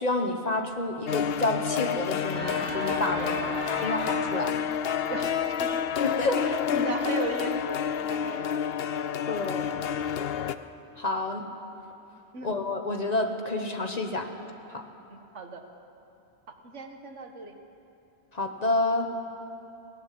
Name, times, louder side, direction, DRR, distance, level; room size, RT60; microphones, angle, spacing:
voice 1, 0.0-3.4 3.8-4.5 6.0-6.6 9.3-9.7 11.0-11.4 12.4-14.3 14.7-14.8 18.3-19.1, left 2 dB, 35° left, 4 dB, 1.4 m, -29 dB
sound 1, 1.1-10.6, left 8 dB, 60° left, 0.8 m, -29 dB
Organ, 2.3-7.1, equal, 5° left, 6.4 m, -38 dB
voice 2, 5.1-5.7 6.3-8.6 12.3-12.5 15.1-15.6 16.6-17.6, right 3 dB, 85° right, 5 dB, 1.8 m, -37 dB
19.0 x 17.5 x 7.7 m, 2.7 s
omnidirectional pair, 1.2 m